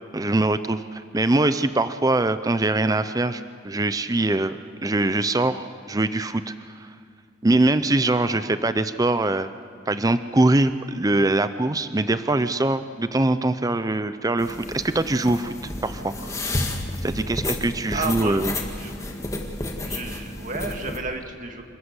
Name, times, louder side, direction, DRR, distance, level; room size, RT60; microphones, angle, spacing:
voice 1, 0.1-6.9 7.4-9.5 9.9-15.5 15.8-16.4 17.0-18.5, right 2 dB, 20° right, 12 dB, 0.6 m, -23 dB
sound 1, 14.4-21.0, left 1 dB, 15° left, 1.7 m, -31 dB
voice 2, 17.9-18.4 18.7-19.1 19.8-21.6, right 3 dB, 40° right, 4 dB, 2.0 m, -32 dB
27.0 x 14.0 x 8.2 m, 2.3 s
head